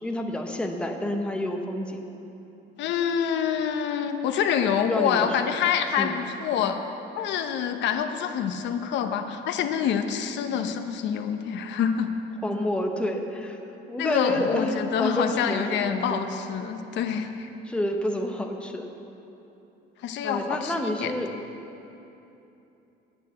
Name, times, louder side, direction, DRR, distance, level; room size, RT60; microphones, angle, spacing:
voice 1, 0.0-2.0 4.9-5.6 6.0-6.2 12.4-13.6 13.9-16.3 17.6-18.9 20.2-21.3, left 1 dB, 5° left, 3 dB, 0.8 m, -29 dB
voice 2, 2.8-6.8 7.2-12.1 14.0-17.5 20.0-21.2, left 8 dB, 75° left, 7 dB, 1.0 m, -26 dB
10.5 x 9.2 x 8.0 m, 3.0 s
cardioid pair, 165°, 19 cm